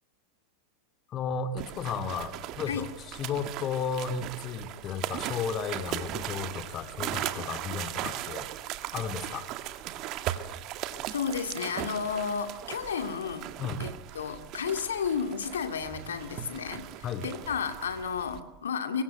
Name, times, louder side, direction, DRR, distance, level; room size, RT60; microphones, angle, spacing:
voice 1, 1.1-8.5 8.9-9.5 13.6-13.8 17.0-17.2, left 6 dB, 30° left, 10 dB, 2.2 m, -34 dB
sound 1, 1.6-18.4, right 12 dB, 40° right, 2.1 m, -38 dB
voice 2, 11.1-13.5 13.8-13.9 14.1-19.0, left 6 dB, 65° left, 8 dB, 2.4 m, -32 dB
26.0 x 23.5 x 9.1 m, 0.85 s
figure-of-eight pair, 90°, 0 cm